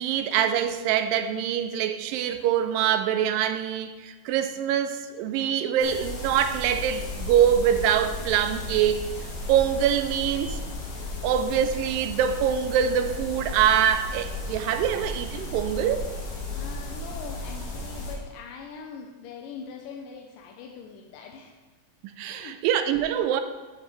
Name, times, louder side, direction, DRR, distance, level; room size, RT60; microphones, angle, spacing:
voice 1, 0.0-9.0 9.5-10.6 11.2-16.1 22.1-23.4, right 9 dB, 90° right, 9 dB, 2.3 m, -24 dB
sound 1, 5.8-18.2, left 2 dB, 60° left, 2.8 m, -35 dB
voice 2, 16.5-21.6 22.3-22.5, left 6 dB, 85° left, 1 dB, 2.3 m, -42 dB
10.0 x 7.7 x 3.2 m, 1.2 s
omnidirectional pair, 3.9 m